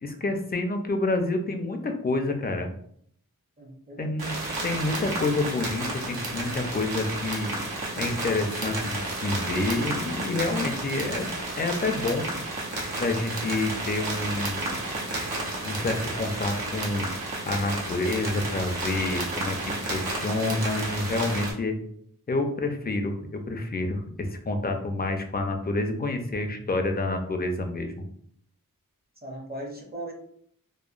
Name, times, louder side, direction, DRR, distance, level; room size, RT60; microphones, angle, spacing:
voice 1, 0.0-2.7 4.0-4.3 4.6-7.5 8.0-12.3 13.0-14.6 15.6-17.1 17.5-21.8 22.3-28.0, left 2 dB, 30° left, 5 dB, 0.4 m, -28 dB
voice 2, 3.6-4.2 26.6-26.7 29.2-30.1, right 1 dB, 25° right, 1 dB, 0.6 m, -38 dB
sound 1, 4.2-21.5, right 2 dB, 85° right, 0.7 m, -32 dB
2.8 x 2.0 x 2.4 m, 0.66 s
wide cardioid pair, 45°, 35 cm